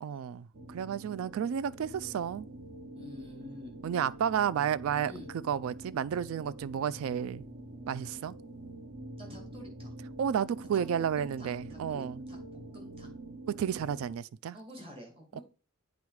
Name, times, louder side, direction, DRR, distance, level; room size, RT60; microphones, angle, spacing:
voice 1, 0.0-2.5 3.8-5.1 5.4-7.5 7.9-8.3 10.2-12.2 13.5-14.6 15.3-15.4, right 8 dB, 75° right, 0.3 m, -32 dB
sound 1, 0.5-14.1, right 2 dB, 55° right, 1.0 m, -46 dB
voice 2, 2.9-3.8 5.0-5.3 9.2-10.0 10.7-10.8 11.2-12.0 12.3-12.4 12.7-13.1 14.5-15.4, left 1 dB, 25° right, 2.0 m, -48 dB
8.5 x 3.9 x 4.7 m
head